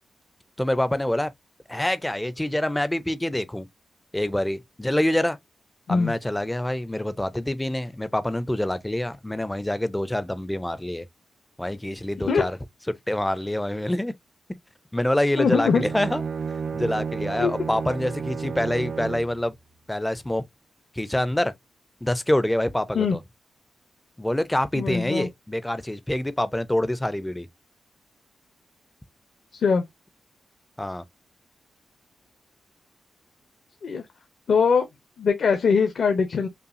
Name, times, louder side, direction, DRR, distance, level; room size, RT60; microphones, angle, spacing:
voice 1, 0.6-1.3 1.7-3.7 4.1-5.4 5.9-11.1 11.6-12.6 12.9-14.1 14.9-16.2 16.7-19.6 19.9-20.4 20.9-21.5 22.0-23.2 24.2-27.5 30.8-31.0, left 1 dB, 10° left, 0.4 m, -26 dB
voice 2, 15.4-15.8 17.4-17.5 22.9-23.1 24.7-25.3 29.5-29.8 33.8-34.0 34.5-34.9 35.2-36.5, left 5 dB, 60° left, 0.7 m, -21 dB
Bowed string instrument, 15.5-19.4, right 5 dB, 50° right, 0.5 m, -32 dB
5.5 x 2.3 x 2.5 m
wide cardioid pair, 155°, 0 cm